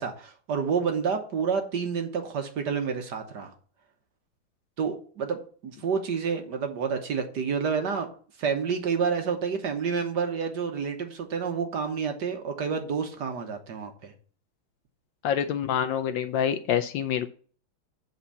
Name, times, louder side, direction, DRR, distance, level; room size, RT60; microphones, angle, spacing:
voice 1, 0.0-3.5 4.8-8.1 8.4-14.1, right 6 dB, 60° right, 5 dB, 1.5 m, -29 dB
voice 2, 15.2-17.3, left 9 dB, 75° left, 8 dB, 1.2 m, -26 dB
7.8 x 4.4 x 6.9 m, 0.43 s
omnidirectional pair, 2.4 m